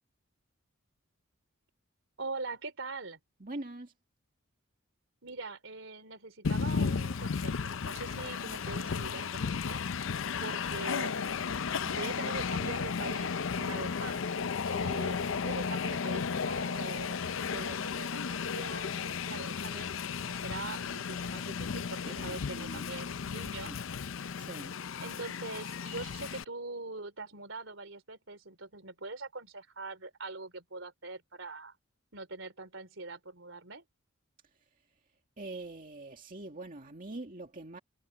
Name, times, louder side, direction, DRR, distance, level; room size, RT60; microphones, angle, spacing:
voice 1, 2.2-3.2 5.2-9.8 10.4-11.5 11.8-14.4 14.6-19.9 20.2-23.9 25.0-31.7 32.1-33.8, right 3 dB, 65° right, 3.8 m, -43 dB
voice 2, 3.4-3.9 22.1-22.9 23.6-23.8 24.4-24.8 35.4-37.8, right 2 dB, 40° right, 2.2 m, -43 dB
Train, 6.4-26.4, left 6 dB, 70° left, 0.5 m, -34 dB
head